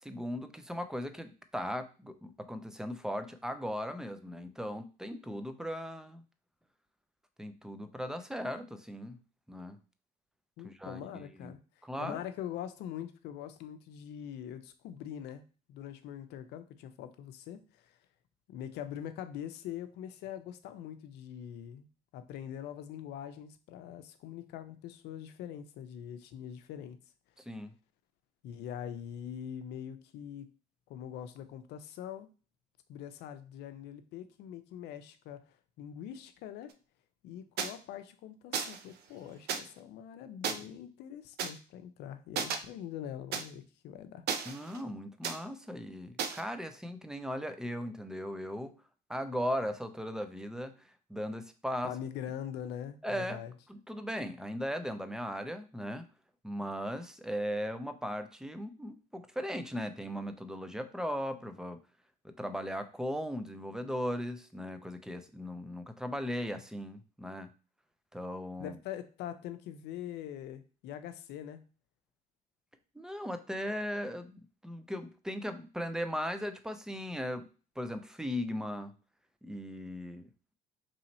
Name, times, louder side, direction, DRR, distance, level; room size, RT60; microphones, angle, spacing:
voice 1, 0.0-6.2 7.4-9.2 9.5-9.8 10.6-11.6 11.8-12.2 27.5-27.7 44.5-48.8 49.1-51.9 53.0-53.4 53.7-56.1 56.4-61.8 62.2-67.5 68.1-68.8 72.9-77.5 77.8-78.9 79.4-80.3, equal, 5° right, 9 dB, 0.4 m, -38 dB
voice 2, 10.6-11.6 12.0-18.0 18.5-21.9 22.1-27.0 28.4-30.5 30.9-32.3 32.9-36.8 37.2-44.3 51.8-53.5 68.6-71.6, left 10 dB, 85° left, 10 dB, 0.5 m, -43 dB
sound 1, 37.6-37.7 38.5-38.8 39.5-39.6 40.4-40.5 41.4-41.5 42.4-42.6 43.3-43.4 44.3-44.8 45.2-45.4 46.2-46.4, right 7 dB, 70° right, 0.5 m, -33 dB
3.1 x 2.8 x 4.1 m, 0.34 s
cardioid pair, 110°, 17 cm